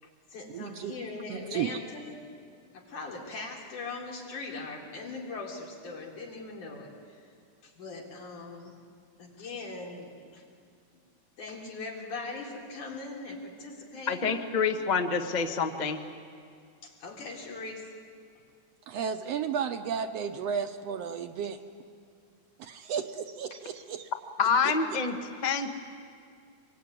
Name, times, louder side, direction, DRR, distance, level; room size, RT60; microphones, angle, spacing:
voice 1, 0.0-2.2 2.7-7.3 7.6-8.8 9.2-10.5 11.4-14.5 16.8-17.9 23.5-23.6 24.4-24.7, left 3 dB, 90° left, -1 dB, 5.3 m, -41 dB
voice 2, 0.5-0.9 1.3-1.7 18.9-21.6 22.6-24.1, right 7 dB, 70° right, 8 dB, 1.7 m, -33 dB
voice 3, 14.1-16.0 24.4-25.7, left 5 dB, 50° left, 5 dB, 0.5 m, -27 dB
25.5 x 22.0 x 9.8 m, 2.2 s
omnidirectional pair, 3.4 m